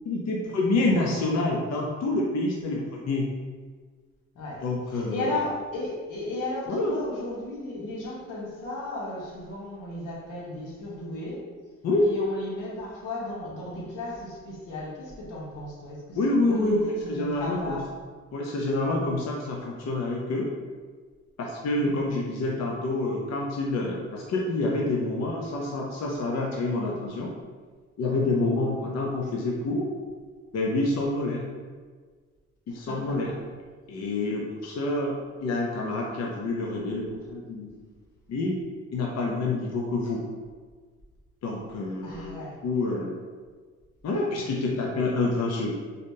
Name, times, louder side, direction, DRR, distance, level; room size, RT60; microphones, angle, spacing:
voice 1, 0.0-3.2 4.6-5.4 6.7-6.9 11.8-12.1 16.1-16.8 17.1-17.8 18.3-20.5 21.4-27.3 28.0-29.9 30.5-31.5 32.7-33.3 33.9-37.7 38.3-38.5 38.9-40.2 41.4-42.3 42.6-43.2 44.0-45.8, left 2 dB, 60° left, -2 dB, 0.7 m, -27 dB
voice 2, 4.3-11.4 12.0-17.9 21.8-22.1 28.8-28.9 32.7-33.4 42.0-42.6, left 2 dB, 90° left, -4 dB, 1.2 m, -35 dB
3.9 x 3.6 x 2.7 m, 1.5 s
cardioid pair, 90°, 30 cm